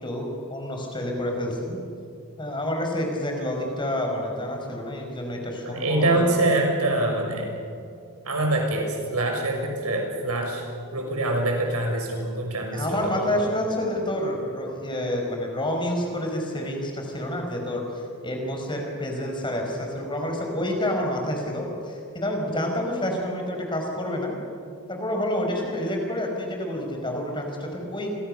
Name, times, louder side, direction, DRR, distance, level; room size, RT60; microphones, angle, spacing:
voice 1, 0.0-1.8 2.4-6.3 12.7-17.8 18.2-24.3 24.9-28.2, left 1 dB, 20° left, 1 dB, 5.1 m, -28 dB
voice 2, 5.6-7.5 8.2-10.7 10.9-13.3, right 2 dB, 90° right, 2 dB, 6.3 m, -25 dB
29.5 x 24.5 x 6.7 m, 2.4 s
head